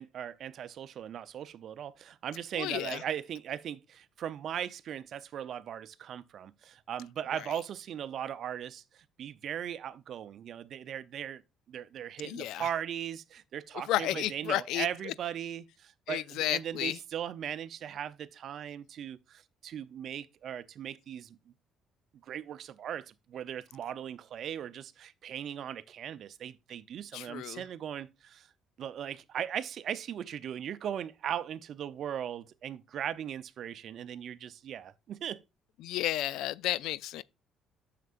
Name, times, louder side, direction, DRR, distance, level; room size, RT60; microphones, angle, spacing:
voice 1, 0.0-11.4 11.7-21.4 22.2-28.5 28.8-35.4, right 9 dB, 60° right, 0.6 m, -38 dB
voice 2, 2.6-3.0 12.2-12.7 13.9-15.1 16.1-17.0 27.1-27.6 35.8-37.2, left 14 dB, 75° left, 0.3 m, -32 dB
9.1 x 6.7 x 2.5 m
supercardioid pair, 75°, 0 cm